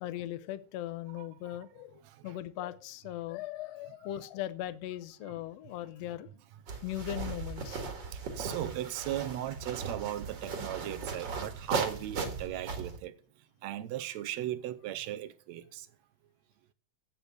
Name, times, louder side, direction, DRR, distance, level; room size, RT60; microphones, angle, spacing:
voice 1, 0.0-6.3 6.8-7.8, left 13 dB, 70° left, 1.7 m, -39 dB
voice 2, 2.0-2.4 5.2-5.4 8.1-13.2 13.6-15.9, right 13 dB, 75° right, 1.9 m, -37 dB
sound 1, 6.7-13.0, right 4 dB, 45° right, 2.1 m, -37 dB
8.5 x 6.8 x 7.8 m
omnidirectional pair, 3.3 m